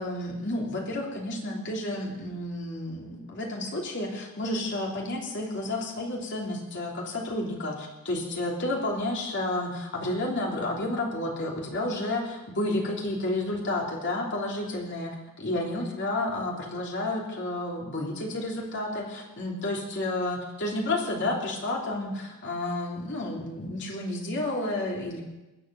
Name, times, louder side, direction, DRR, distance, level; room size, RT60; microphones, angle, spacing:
voice 1, 0.0-25.2, left 1 dB, 55° left, -1 dB, 3.2 m, -31 dB
20.0 x 8.1 x 7.6 m, 1.1 s
head